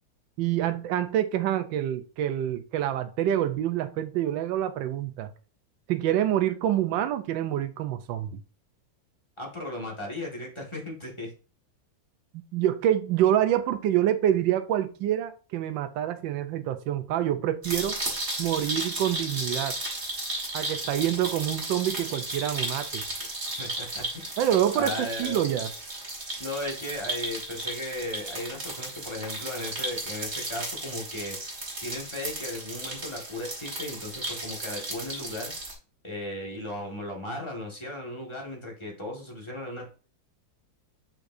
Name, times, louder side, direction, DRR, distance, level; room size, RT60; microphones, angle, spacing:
voice 1, 0.4-5.3 5.9-8.4 12.5-18.0 18.4-19.8 20.5-23.0 24.4-25.7, right 11 dB, 75° right, 1.4 m, -26 dB
voice 2, 9.4-11.3 23.6-24.3 24.8-25.4 26.4-31.4 31.8-35.5 36.0-39.9, left 1 dB, 15° left, 1.8 m, -36 dB
sound 1, 17.6-35.7, right 1 dB, 35° right, 2.5 m, -34 dB
7.1 x 5.6 x 2.7 m
omnidirectional pair, 2.1 m